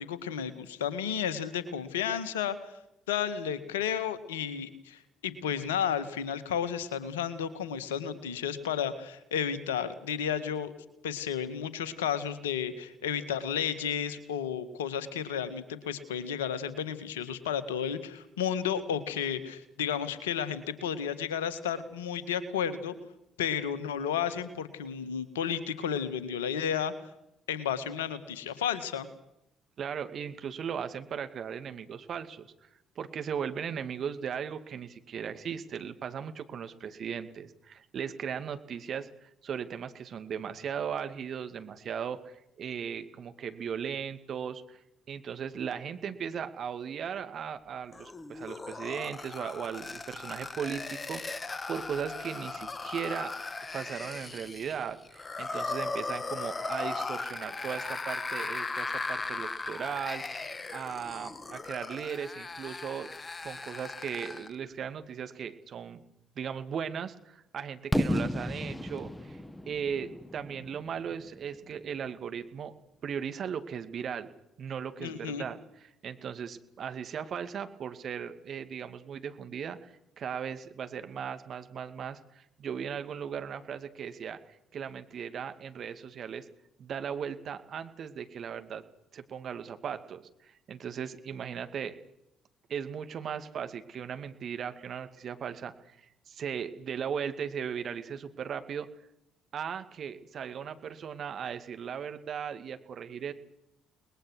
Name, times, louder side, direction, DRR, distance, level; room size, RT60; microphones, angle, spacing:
voice 1, 0.0-2.7 3.1-10.7 11.0-22.9 23.4-26.9 27.5-29.1 75.0-75.5, left 8 dB, 80° left, 13 dB, 1.8 m, -32 dB
voice 2, 29.8-32.7 33.0-44.8 45.1-53.3 53.7-60.2 60.7-63.1 63.4-66.0 66.4-69.4 69.7-72.7 73.0-74.3 74.6-86.4 86.8-88.8 89.1-92.0 92.7-96.0 96.3-98.9 99.5-103.3, right 7 dB, 55° right, 9 dB, 2.4 m, -37 dB
sound 1, 47.9-64.6, left 3 dB, 30° left, 1.6 m, -38 dB
Fireworks, 67.9-71.8, left 1 dB, 10° left, 1.8 m, -33 dB
30.0 x 20.5 x 6.4 m, 0.82 s
figure-of-eight pair, 45°, 0 cm